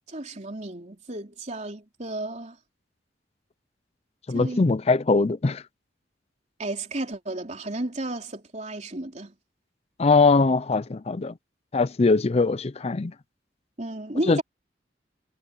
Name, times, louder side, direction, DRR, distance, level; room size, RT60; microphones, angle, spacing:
voice 1, 0.1-2.6 4.3-4.6 6.6-9.3 13.8-14.4, right 1 dB, 40° right, 3.6 m, -33 dB
voice 2, 4.3-5.6 10.0-11.3 11.7-13.1 14.3-14.4, left 3 dB, 35° left, 0.5 m, -21 dB
head